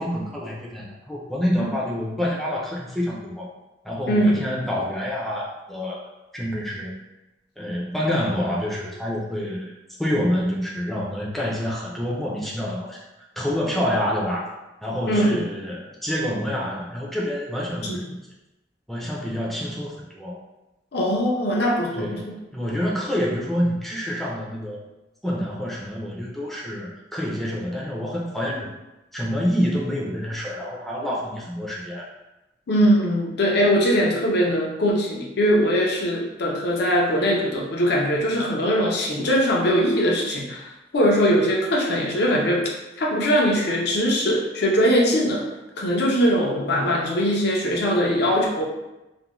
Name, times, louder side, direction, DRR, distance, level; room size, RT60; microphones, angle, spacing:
voice 1, 0.0-3.5 3.8-6.0 6.3-6.9 7.6-9.7 10.0-13.0 13.4-14.4 14.8-18.2 18.9-20.4 21.9-24.8 25.2-28.7 29.1-32.1, equal, ahead, -5 dB, 0.4 m, -27 dB
voice 2, 4.1-4.4 15.1-15.5 17.8-18.0 20.9-22.3 32.7-42.7 43.0-45.5 45.8-48.6, equal, 65° left, -2 dB, 0.6 m, -21 dB
2.5 x 2.1 x 2.9 m, 0.99 s
head